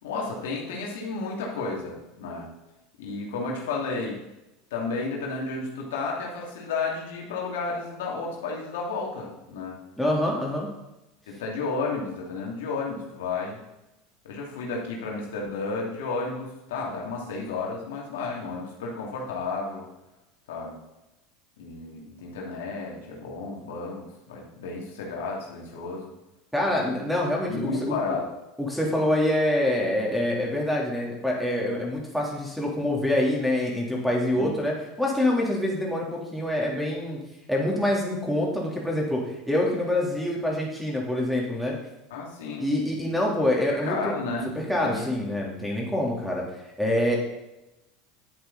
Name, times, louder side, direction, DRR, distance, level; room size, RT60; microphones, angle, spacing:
voice 1, 0.0-2.5 3.0-4.2 4.7-9.8 11.3-13.6 14.2-19.9 20.5-20.7 21.6-26.1 27.4-28.2 34.3-34.6 42.1-42.7 43.7-45.1, left 4 dB, 85° left, -2 dB, 2.6 m, -32 dB
voice 2, 10.0-10.7 26.5-28.0 28.6-37.2 37.5-41.7 42.6-44.1 44.5-46.4 46.8-47.2, left 1 dB, ahead, -2 dB, 3.3 m, -26 dB
11.0 x 7.9 x 4.1 m, 0.97 s
supercardioid pair, 110°, 0 cm